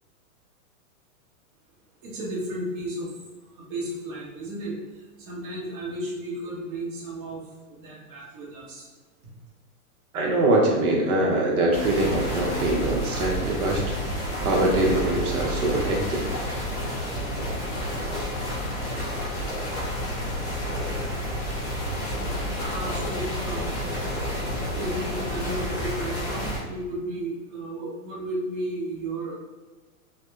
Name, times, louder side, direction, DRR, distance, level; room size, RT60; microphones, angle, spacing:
voice 1, 2.0-3.1 3.7-4.7 5.3-7.4 7.7-8.8 22.5-23.7 24.7-29.4, right 1 dB, 35° right, -5 dB, 0.8 m, -33 dB
voice 2, 10.1-13.9 14.4-16.4, right 1 dB, 80° right, -1 dB, 0.7 m, -23 dB
sound 1, 11.7-26.6, equal, 20° left, 0.8 m, -30 dB
2.8 x 2.1 x 2.3 m, 1.3 s
hypercardioid pair, 135°, 43 cm